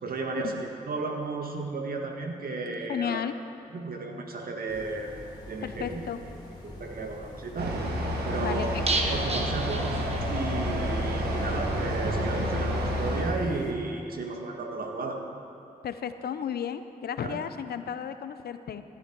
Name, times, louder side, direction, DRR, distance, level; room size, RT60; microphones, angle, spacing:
voice 1, 0.0-3.2 3.7-5.1 5.5-6.3 6.6-7.8 8.2-8.7 9.1-9.9 10.3-15.2 17.2-17.4, right 3 dB, 65° right, 2 dB, 1.8 m, -34 dB
voice 2, 2.9-3.3 5.6-6.2 8.4-8.8 15.8-18.8, left 8 dB, 80° left, 11 dB, 0.7 m, -33 dB
sound 1, 4.7-13.7, equal, 25° left, 3.0 m, -44 dB
sound 2, 7.6-13.2, equal, 90° right, 1.8 m, -29 dB
sound 3, 8.9-10.6 10.9-11.0 11.3-11.4, right 2 dB, 40° right, 1.5 m, -31 dB
16.0 x 12.0 x 4.6 m, 2.6 s
cardioid pair, 50°, 16 cm